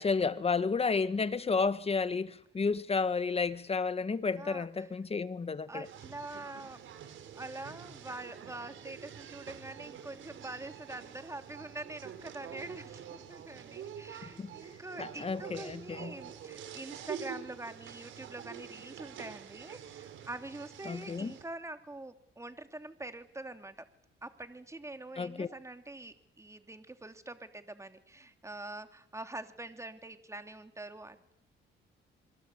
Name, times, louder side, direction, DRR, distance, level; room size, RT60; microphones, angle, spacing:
voice 1, 0.0-5.9 14.4-14.5 15.0-16.1 20.8-21.3 25.2-25.5, left 4 dB, 30° left, 1.7 m, -31 dB
voice 2, 4.4-4.9 5.7-6.8 7.3-23.9 24.2-31.4, right 2 dB, 15° right, 3.0 m, -45 dB
sound 1, 5.8-21.4, right 8 dB, 75° right, 4.7 m, -47 dB
27.5 x 23.0 x 8.5 m
cardioid pair, 90°, 20 cm